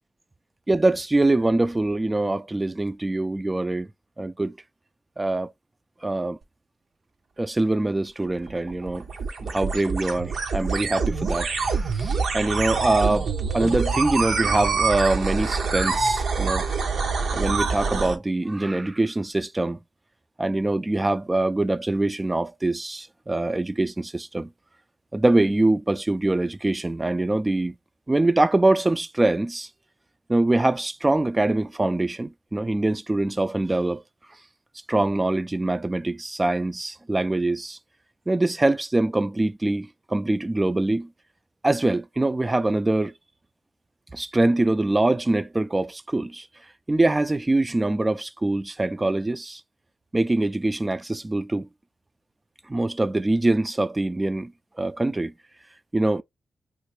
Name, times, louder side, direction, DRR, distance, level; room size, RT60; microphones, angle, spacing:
voice 1, 0.7-3.9 4.2-4.6 5.2-5.5 6.0-6.4 7.4-9.0 9.4-16.7 17.3-19.8 20.4-24.5 25.1-27.8 28.1-29.7 30.3-34.0 34.9-37.8 38.3-41.1 41.6-43.1 44.1-46.5 46.9-49.6 50.1-51.7 52.7-54.5 54.8-55.3 55.9-56.2, right 2 dB, 25° right, 0.4 m, -24 dB
sound 1, 8.3-18.2, right 4 dB, 75° right, 0.7 m, -26 dB
3.1 x 2.5 x 3.2 m
supercardioid pair, 45°, 0 cm